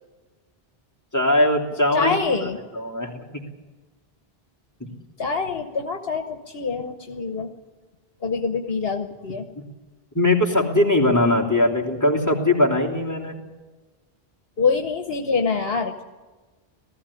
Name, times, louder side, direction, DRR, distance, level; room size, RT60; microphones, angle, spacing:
voice 1, 1.1-2.2 2.7-3.4 4.8-4.9 9.6-9.7 10.1-13.3, left 1 dB, 15° left, -1 dB, 3.1 m, -20 dB
voice 2, 1.9-2.6 5.2-7.5 8.2-9.4 14.6-16.0, left 4 dB, 75° left, 5 dB, 1.4 m, -25 dB
18.5 x 15.0 x 9.8 m, 1.3 s
omnidirectional pair, 1.0 m